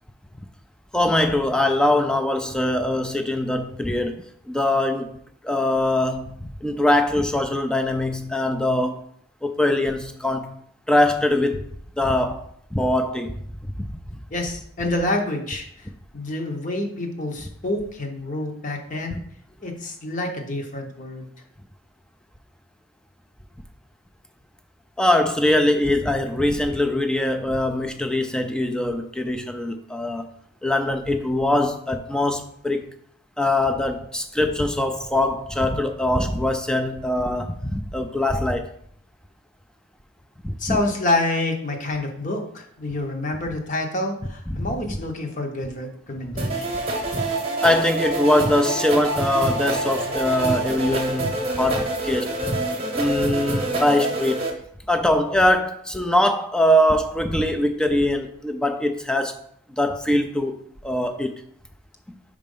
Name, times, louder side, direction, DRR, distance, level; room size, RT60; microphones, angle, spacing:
voice 1, 0.9-5.2 5.4-9.0 9.4-10.5 10.9-11.7 12.0-12.4 12.7-13.3 13.6-14.2 25.0-30.3 30.6-32.9 33.4-38.7 40.4-40.8 44.5-45.0 47.6-52.5 52.7-54.5 54.9-59.4 59.7-60.6 60.8-61.4, left 1 dB, 5° left, 0.4 m, -22 dB
voice 2, 14.3-19.2 19.6-21.3 40.6-46.8, left 2 dB, 40° left, 0.9 m, -28 dB
sound 1, 46.4-54.5, right 2 dB, 30° right, 1.0 m, -26 dB
5.1 x 4.3 x 5.4 m
head